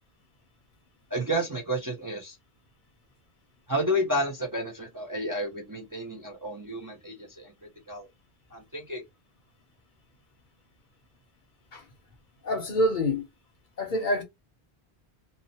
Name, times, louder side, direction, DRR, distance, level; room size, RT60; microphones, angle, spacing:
voice 1, 1.1-2.4 3.7-7.5 7.9-8.1 8.5-9.0, equal, 25° right, 0.4 m, -31 dB
voice 2, 12.4-13.3 13.8-14.2, left 1 dB, 55° left, 0.7 m, -26 dB
2.7 x 2.0 x 2.7 m
omnidirectional pair, 1.1 m